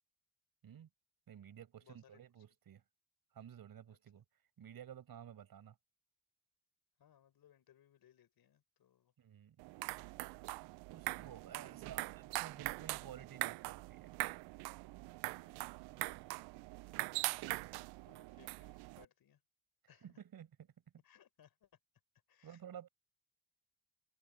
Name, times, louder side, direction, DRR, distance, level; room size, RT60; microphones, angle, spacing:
voice 1, 1.3-2.8 3.3-4.2 4.6-5.8 9.2-9.6 10.9-14.2 20.0-20.7 22.4-22.9, right 9 dB, 60° right, 5.1 m, -53 dB
voice 2, 1.8-2.2 3.9-4.0 7.0-9.1 10.0-10.2 11.4-11.9 15.4-16.9 17.6-17.7 18.0-19.4 19.9-20.2 21.0-21.7 22.3-22.6, left 10 dB, 65° left, 6.1 m, -68 dB
sound 1, 9.6-19.0, right 22 dB, 80° right, 0.5 m, -42 dB
open air
supercardioid pair, 55°, 39 cm